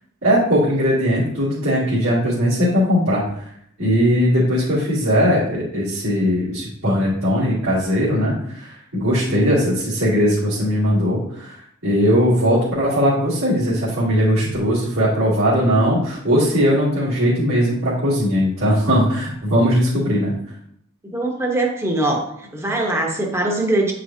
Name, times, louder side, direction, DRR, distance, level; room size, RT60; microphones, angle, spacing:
voice 1, 0.2-3.4 3.8-11.6 11.8-20.3, equal, 85° right, -11 dB, 2.5 m, -19 dB
voice 2, 21.1-22.2 22.5-23.9, right 2 dB, 15° right, 0 dB, 0.9 m, -21 dB
8.5 x 5.0 x 2.7 m, 0.72 s
head